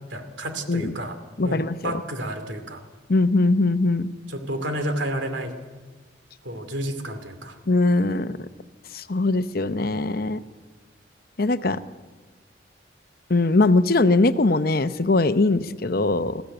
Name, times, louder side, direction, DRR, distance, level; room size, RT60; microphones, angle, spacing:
voice 1, 0.1-1.2 1.4-2.8 4.3-5.5 6.4-7.6, right 1 dB, 80° right, 7 dB, 2.6 m, -30 dB
voice 2, 1.4-1.8 3.1-4.1 7.7-8.4 8.9-10.4 11.4-11.8 13.3-16.4, left 2 dB, 55° left, 12 dB, 0.8 m, -21 dB
20.5 x 15.5 x 8.9 m, 1.3 s
head